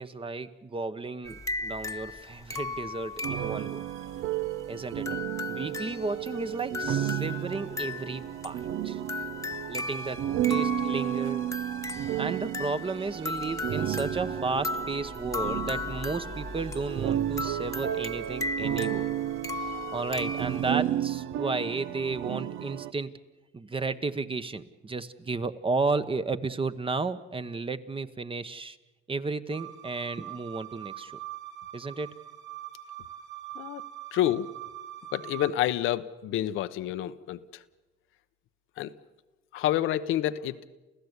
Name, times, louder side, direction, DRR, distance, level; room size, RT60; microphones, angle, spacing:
voice 1, 0.0-3.8 4.7-5.1 5.5-9.0 9.7-11.5 12.2-19.1 19.6-23.2 23.5-28.8 29.1-31.2 31.7-32.1, right 3 dB, 25° right, 11 dB, 1.0 m, -33 dB
sound 1, 1.2-20.7, left 3 dB, 15° left, 1.1 m, -37 dB
sound 2, 3.2-22.9, right 12 dB, 85° right, 0.7 m, -32 dB
sound 3, 29.5-35.5, right 13 dB, 70° right, 2.2 m, -43 dB
voice 2, 34.1-34.5 35.1-37.4 38.8-38.9 39.5-40.7, left 12 dB, 90° left, 11 dB, 0.8 m, -28 dB
29.0 x 15.0 x 8.1 m, 1.2 s
cardioid pair, 90°, 20 cm